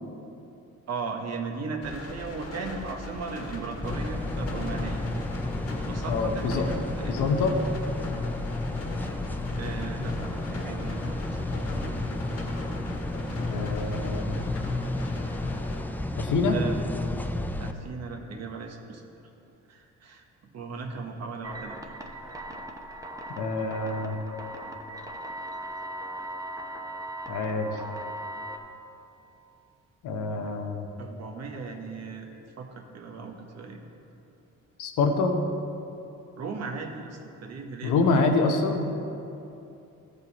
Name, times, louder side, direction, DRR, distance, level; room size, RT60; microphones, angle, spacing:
voice 1, 0.9-5.1 5.8-7.1 9.5-11.5 16.0-16.2 16.5-16.8 17.6-19.0 19.7-20.2 20.5-21.8 31.0-32.3 32.6-33.8 36.4-38.1, right 4 dB, 60° right, 2 dB, 1.2 m, -37 dB
sound 1, 1.8-15.8, left 2 dB, 55° left, 1.6 m, -39 dB
sound 2, 3.8-17.7, left 2 dB, 5° left, 0.4 m, -32 dB
voice 2, 6.1-6.7 7.1-7.5 10.0-10.1 13.4-14.4 16.2-16.6 23.4-24.2 27.3-27.7 30.0-30.9 34.8-35.5 37.8-38.9, left 3 dB, 80° left, 4 dB, 0.9 m, -26 dB
sound 3, 21.4-28.6, right 1 dB, 10° right, 0.9 m, -39 dB
14.0 x 5.3 x 4.1 m, 2.8 s
cardioid pair, 90°, 30 cm